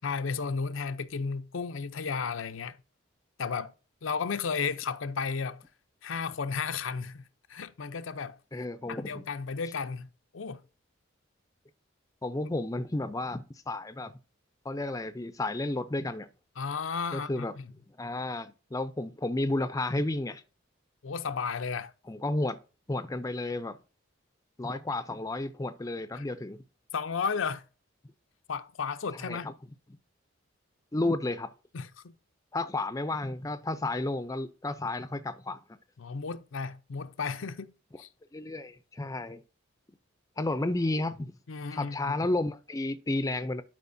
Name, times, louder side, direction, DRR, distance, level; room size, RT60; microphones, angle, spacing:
voice 1, 0.0-2.8 3.4-3.7 4.0-5.6 6.0-7.2 7.5-10.1 10.3-10.6 16.6-17.7 21.0-21.9 26.1-26.2 26.9-27.6 28.5-29.5 31.7-32.1 36.0-37.7 38.0-38.1 41.5-42.2, left 5 dB, 75° left, 0.6 m, -34 dB
voice 2, 8.5-9.2 12.2-14.1 14.6-16.3 17.1-17.5 18.0-20.4 22.1-22.6 22.9-23.8 24.6-26.6 29.3-29.5 30.9-31.5 32.5-35.6 38.3-39.4 40.4-41.3 41.7-43.6, left 2 dB, 15° left, 0.5 m, -32 dB
12.0 x 5.0 x 2.6 m
head